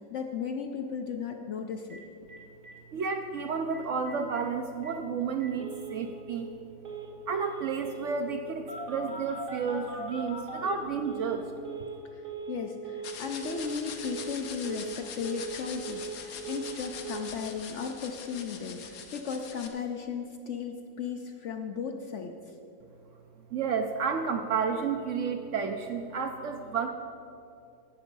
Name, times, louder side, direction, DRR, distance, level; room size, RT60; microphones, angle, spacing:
voice 1, 0.1-2.0 12.1-22.3, left 6 dB, 60° left, 4 dB, 0.8 m, -36 dB
Telephone, 1.9-2.0 2.3-2.4 2.6-2.7 3.0-3.4 3.7-3.8 4.1-4.4 4.8-4.9 5.4-6.1 6.8-7.1 7.3-8.1 8.7-11.4 11.6-12.0 12.2-12.6 12.8-13.2 13.4-13.8 14.0-14.4 14.6-15.0 15.2-16.2 16.4-16.8 17.0-17.3, right 5 dB, 85° right, 2.6 m, -40 dB
voice 2, 2.9-6.5 7.3-11.5 23.5-26.9, right 5 dB, 65° right, 5 dB, 0.8 m, -31 dB
sound 1, 13.0-19.7, left 6 dB, 80° left, 1.5 m, -43 dB
16.5 x 6.2 x 5.4 m, 2.7 s
omnidirectional pair, 1.7 m